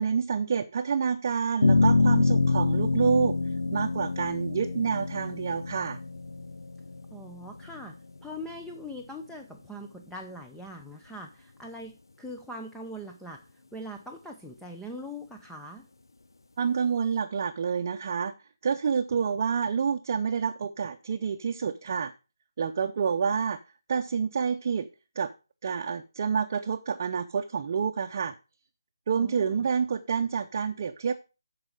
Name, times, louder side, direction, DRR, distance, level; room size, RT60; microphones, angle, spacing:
voice 1, 0.0-3.4 3.7-6.0 16.6-18.3 18.6-22.1 22.6-23.6 23.9-24.9 25.2-25.3 25.6-28.3 29.1-31.1, right 6 dB, 40° right, 3 dB, 0.7 m, -28 dB
sound 1, 1.6-8.2, left 3 dB, 75° left, 0.5 m, -26 dB
voice 2, 7.1-15.9 29.1-29.6, equal, ahead, 1 dB, 0.6 m, -42 dB
13.0 x 4.9 x 4.8 m, 0.31 s
figure-of-eight pair, 155°, 2 cm